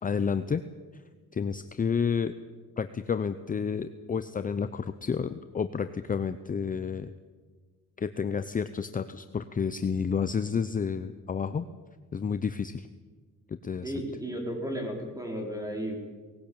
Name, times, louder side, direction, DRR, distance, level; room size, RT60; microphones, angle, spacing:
voice 1, 0.0-0.6 1.3-2.3 2.8-7.1 8.0-11.7 12.1-12.9 13.5-13.9, left 6 dB, 25° left, 11 dB, 0.6 m, -30 dB
voice 2, 13.8-16.0, equal, 10° right, 2 dB, 4.4 m, -34 dB
19.0 x 17.5 x 8.7 m, 1.5 s
cardioid pair, 135°, 31 cm